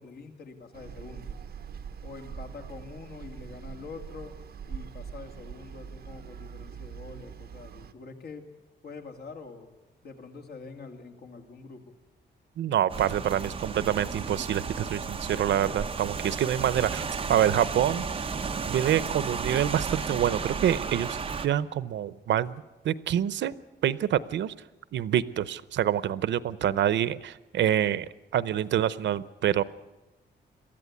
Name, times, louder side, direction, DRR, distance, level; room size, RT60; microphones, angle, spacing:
voice 1, 0.0-1.4 2.0-4.4 4.7-8.5 8.8-9.7 10.0-11.9, left 4 dB, 60° left, 4 dB, 2.4 m, -45 dB
sound 1, 0.7-7.9, right 7 dB, 60° right, 1.1 m, -43 dB
voice 2, 12.6-18.1 18.7-21.2 21.4-23.5 23.8-24.5 24.9-28.1 28.3-29.6, right 10 dB, 90° right, 17 dB, 0.7 m, -26 dB
Rain, 12.9-21.5, right 5 dB, 30° right, 1.0 m, -33 dB
22.5 x 14.5 x 9.6 m, 1.1 s
wide cardioid pair, 170°, 18 cm